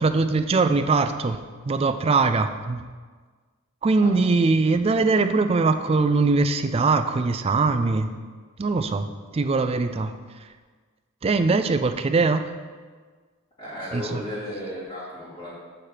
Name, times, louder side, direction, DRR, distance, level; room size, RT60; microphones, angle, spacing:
voice 1, 0.0-2.8 3.8-8.1 8.6-9.1 9.3-10.5 11.2-12.5 13.9-14.2, right 3 dB, 30° right, 9 dB, 0.3 m, -22 dB
voice 2, 13.6-15.5, left 1 dB, 30° left, -13 dB, 2.4 m, -34 dB
6.5 x 4.3 x 6.6 m, 1.5 s
head